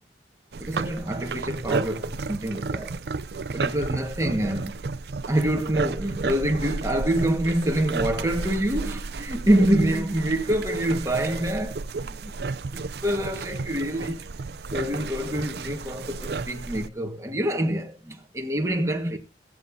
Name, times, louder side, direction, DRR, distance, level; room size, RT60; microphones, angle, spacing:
sound 1, 0.5-16.9, right 4 dB, 65° right, 0.5 m, -32 dB
voice 1, 0.6-3.0 3.5-4.8 5.3-12.3 12.7-14.2 14.7-19.2, right 1 dB, 15° right, 1.5 m, -26 dB
22.0 x 8.8 x 2.7 m
head